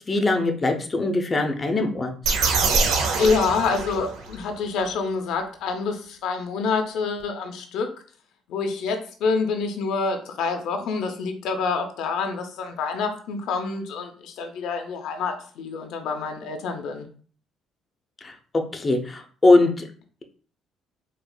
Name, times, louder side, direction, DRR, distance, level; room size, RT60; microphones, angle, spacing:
voice 1, 0.1-2.1 18.2-18.3 18.7-19.8, left 2 dB, 30° left, 4 dB, 0.6 m, -21 dB
sound 1, 2.2-4.4, right 4 dB, 80° right, 0.6 m, -24 dB
voice 2, 3.2-7.9 8.5-17.1, left 4 dB, 75° left, 5 dB, 0.4 m, -27 dB
4.2 x 2.3 x 2.2 m, 0.43 s
cardioid pair, 85°, 0 cm